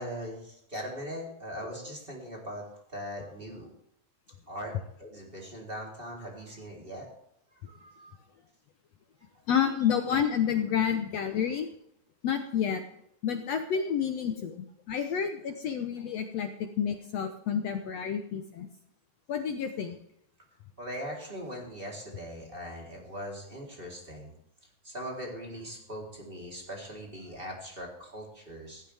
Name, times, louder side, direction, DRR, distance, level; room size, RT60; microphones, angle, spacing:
voice 1, 0.0-3.7 4.5-7.1 7.7-8.2 15.0-15.1 15.9-16.0 20.8-24.3 24.8-28.8, equal, 15° right, -1 dB, 3.6 m, -40 dB
voice 2, 9.5-11.7 12.2-12.8 13.2-16.5 16.8-18.7 19.3-20.0, left 8 dB, 75° left, 7 dB, 1.5 m, -29 dB
16.5 x 15.5 x 3.5 m, 0.74 s
omnidirectional pair, 4.2 m